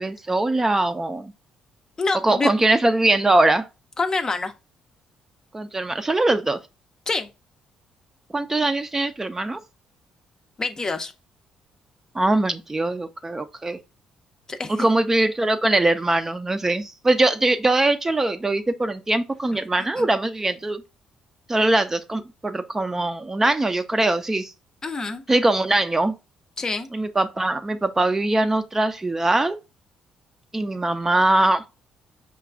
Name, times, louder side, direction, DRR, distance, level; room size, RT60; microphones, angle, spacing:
voice 1, 0.0-1.3 2.2-3.7 5.5-6.6 8.3-9.6 12.1-13.8 14.7-20.8 21.5-24.5 25.3-26.1 26.9-29.6 30.5-31.6, right 2 dB, 20° right, 0.5 m, -22 dB
voice 2, 2.0-2.5 4.0-4.5 7.1-7.3 10.6-11.1 14.5-14.9 19.8-20.1 24.8-25.2 26.6-26.9, left 3 dB, 30° left, 0.5 m, -26 dB
4.9 x 2.3 x 3.4 m
supercardioid pair, 65°, 2 cm